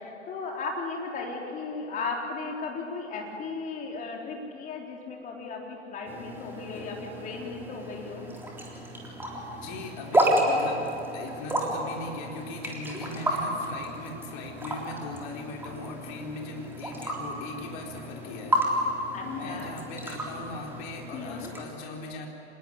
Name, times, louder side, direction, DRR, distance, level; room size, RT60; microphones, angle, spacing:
voice 1, 0.0-8.2 13.1-13.5 19.1-19.7 21.1-21.5, left 4 dB, 20° left, 0 dB, 4.0 m, -36 dB
sound 1, 6.1-21.6, right 1 dB, 5° right, 3.5 m, -31 dB
voice 2, 9.6-18.9 19.2-22.3, left 3 dB, 40° left, 1 dB, 4.2 m, -39 dB
26.0 x 20.0 x 9.9 m, 2.9 s
figure-of-eight pair, 105°, 36 cm